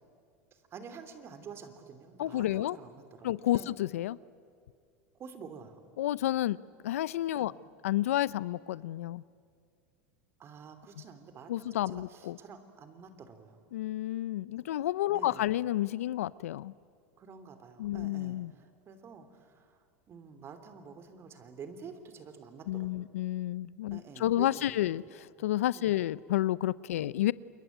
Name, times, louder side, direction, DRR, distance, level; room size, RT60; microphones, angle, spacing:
voice 1, 0.5-3.7 5.2-5.8 7.4-7.5 10.4-13.6 15.1-15.5 17.2-23.1 23.9-25.1 25.4-25.5 25.7-26.0 26.9-27.2, right 5 dB, 35° right, 10 dB, 3.1 m, -49 dB
voice 2, 2.2-2.8 3.2-4.2 6.0-7.5 7.8-9.2 11.5-12.4 13.7-16.7 17.8-18.5 22.7-27.3, left 14 dB, 85° left, 20 dB, 0.6 m, -30 dB
28.5 x 22.5 x 9.3 m, 2.2 s
supercardioid pair, 115°, 7 cm